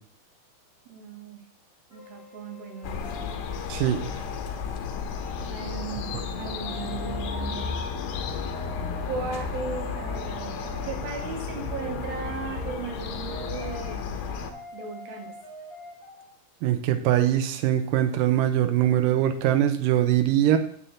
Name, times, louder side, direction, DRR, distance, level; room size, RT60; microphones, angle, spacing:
voice 1, 0.9-1.4 1.9-3.3 5.4-7.8 9.1-14.4 14.7-15.4, right 5 dB, 70° right, 3 dB, 3.0 m, -37 dB
sound 1, 1.9-16.3, equal, 25° left, 1.4 m, -45 dB
sound 2, 2.8-14.5, left 6 dB, 80° left, 3.0 m, -33 dB
voice 2, 3.7-4.0 16.6-20.6, right 12 dB, 90° right, 7 dB, 1.9 m, -22 dB
9.9 x 7.7 x 3.8 m, 0.62 s
omnidirectional pair, 4.7 m